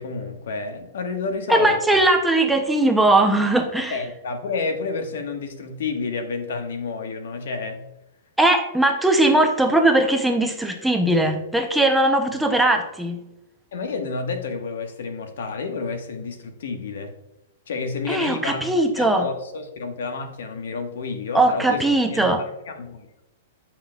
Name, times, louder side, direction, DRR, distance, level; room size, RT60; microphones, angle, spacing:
voice 1, 0.0-2.0 3.9-7.8 13.7-17.1 17.7-23.1, left 4 dB, 75° left, 6 dB, 1.2 m, -30 dB
voice 2, 1.5-4.0 8.4-13.2 18.1-19.3 21.3-22.4, right 1 dB, 5° right, 4 dB, 0.5 m, -19 dB
8.6 x 5.9 x 2.2 m, 0.93 s
hypercardioid pair, 160°, 0 cm